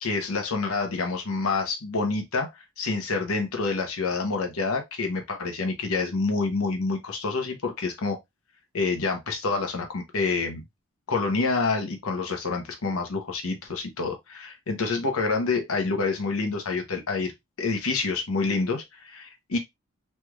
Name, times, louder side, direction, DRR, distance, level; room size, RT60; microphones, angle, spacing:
voice 1, 0.0-8.2 8.7-10.6 11.1-17.3 17.6-19.6, left 4 dB, 85° left, 0.8 m, -27 dB
3.3 x 3.1 x 2.3 m
head